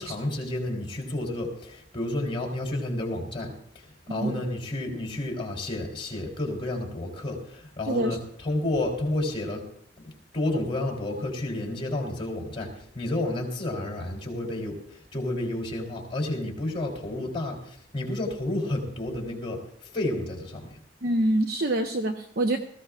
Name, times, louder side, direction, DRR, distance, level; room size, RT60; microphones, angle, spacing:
voice 1, 0.0-9.7 10.0-20.8, left 1 dB, 30° left, 0 dB, 3.5 m, -31 dB
voice 2, 7.9-8.2 21.0-22.6, right 1 dB, 55° right, 4 dB, 0.8 m, -25 dB
19.5 x 15.5 x 2.5 m, 0.67 s
head